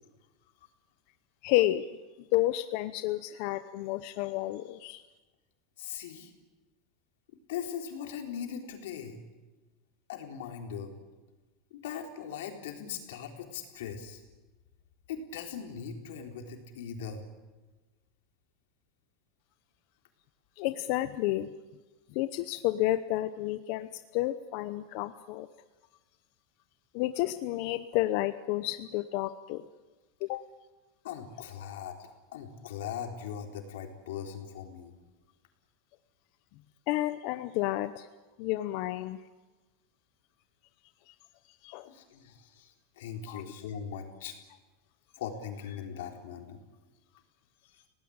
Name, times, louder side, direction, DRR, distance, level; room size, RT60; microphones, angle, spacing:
voice 1, 1.4-1.9 2.2-5.0 20.6-21.5 22.1-25.5 26.9-29.6 30.2-30.4 36.9-38.1 38.4-39.2 41.6-41.9 43.3-43.5, left 16 dB, 50° left, 11 dB, 0.8 m, -30 dB
voice 2, 5.8-6.3 7.5-9.2 10.1-10.9 11.7-14.2 15.1-17.3 31.0-34.9 41.9-44.4 45.2-46.6 47.7-47.8, left 8 dB, 90° left, 3 dB, 4.1 m, -40 dB
29.5 x 18.0 x 8.8 m, 1.2 s
supercardioid pair, 170°, 0 cm